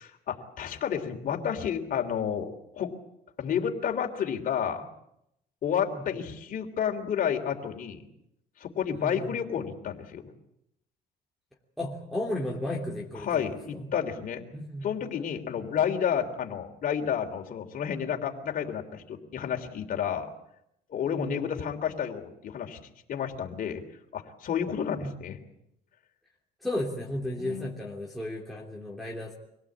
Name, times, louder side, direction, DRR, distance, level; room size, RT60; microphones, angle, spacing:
voice 1, 0.0-2.5 2.7-2.9 3.4-4.9 5.6-8.0 8.6-10.2 13.2-14.4 14.8-20.3 20.9-23.8 24.1-25.4 27.3-27.7, left 8 dB, 55° left, 4 dB, 3.4 m, -31 dB
voice 2, 8.9-9.3 11.8-13.5 13.7-13.9 14.5-14.9 15.5-15.6 21.1-21.4 24.8-25.2 26.6-29.4, left 1 dB, ahead, -4 dB, 3.3 m, -34 dB
25.0 x 17.5 x 8.8 m, 0.80 s
cardioid pair, 110°, 17 cm